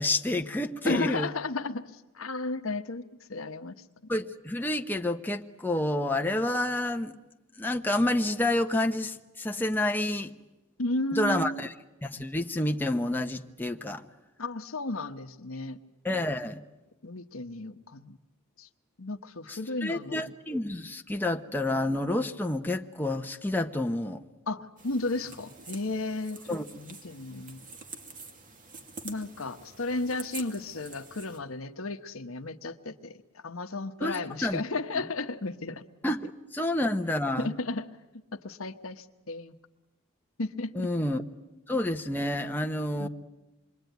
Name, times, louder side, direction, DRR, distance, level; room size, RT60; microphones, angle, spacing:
voice 1, 0.0-1.3 4.1-7.1 7.6-10.3 11.1-11.7 12.0-14.0 16.0-16.6 19.5-24.2 26.5-26.6 34.0-34.6 36.0-37.5 40.7-41.2 41.7-43.1, left 1 dB, 10° left, 0.9 m, -29 dB
voice 2, 0.8-4.1 10.8-11.6 14.4-15.8 17.0-18.2 18.6-18.7 19.0-20.3 24.5-26.4 26.8-27.6 29.0-33.2 33.4-35.8 37.4-37.9 38.3-39.6 40.4-40.9 43.0-43.1, left 2 dB, 70° left, 1.2 m, -34 dB
sound 1, 24.8-31.4, right 4 dB, 40° right, 2.5 m, -47 dB
27.0 x 22.5 x 9.4 m
head